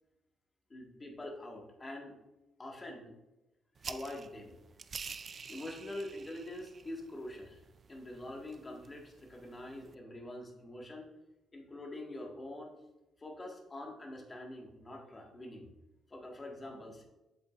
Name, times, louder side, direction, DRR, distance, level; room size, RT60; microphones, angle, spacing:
voice 1, 0.7-2.2 2.6-3.1 3.8-4.5 5.5-7.6 7.9-11.1 11.5-12.8 13.2-15.7 16.1-17.0, left 1 dB, 25° left, 1 dB, 1.7 m, -45 dB
sound 1, 3.8-9.9, right 5 dB, 45° right, 0.4 m, -49 dB
7.6 x 7.1 x 2.5 m, 0.99 s
cardioid pair, 90°, 0 cm